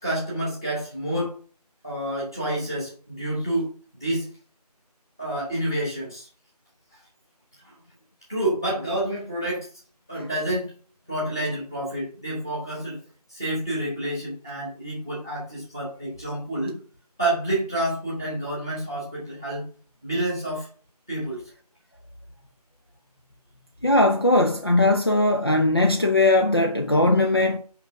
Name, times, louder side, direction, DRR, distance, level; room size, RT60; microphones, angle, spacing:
voice 1, 0.0-1.3 1.8-4.3 5.2-6.3 7.6-7.8 8.3-9.7 10.1-10.7 11.1-13.0 13.3-16.8 17.2-19.6 20.0-20.7 21.1-21.4, right 1 dB, 5° left, 1.2 m, -28 dB
voice 2, 23.8-27.6, left 2 dB, 35° left, 0.5 m, -19 dB
5.7 x 5.3 x 5.1 m
figure-of-eight pair, 170°, 21 cm